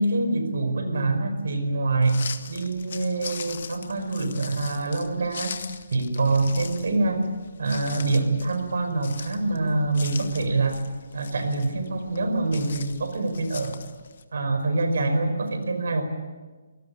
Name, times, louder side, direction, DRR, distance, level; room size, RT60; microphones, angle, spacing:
voice 1, 0.0-5.6 5.9-7.3 7.6-10.8 11.1-13.8 14.3-16.0, right 2 dB, 70° right, 8 dB, 5.2 m, -25 dB
sound 1, 2.0-14.2, left 6 dB, 55° left, 1.8 m, -41 dB
24.5 x 19.0 x 8.5 m, 1.3 s
hypercardioid pair, 170°, 0 cm